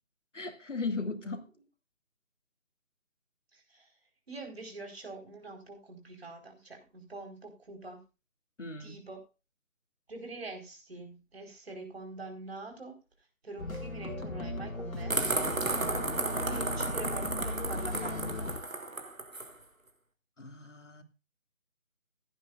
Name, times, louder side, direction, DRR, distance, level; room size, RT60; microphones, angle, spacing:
voice 1, 0.3-1.5 8.6-9.0 20.4-21.0, left 3 dB, 60° left, 2.6 m, -37 dB
voice 2, 3.5-3.9 4.3-8.0 8.8-9.2 10.1-13.0 13.4-15.5 16.2-18.5, right 2 dB, 45° right, 4.7 m, -45 dB
sound 1, 13.6-18.6, left 2 dB, 85° left, 2.5 m, -37 dB
sound 2, 15.1-19.5, right 2 dB, 75° right, 3.1 m, -33 dB
16.5 x 11.0 x 2.5 m
figure-of-eight pair, 160°, 41 cm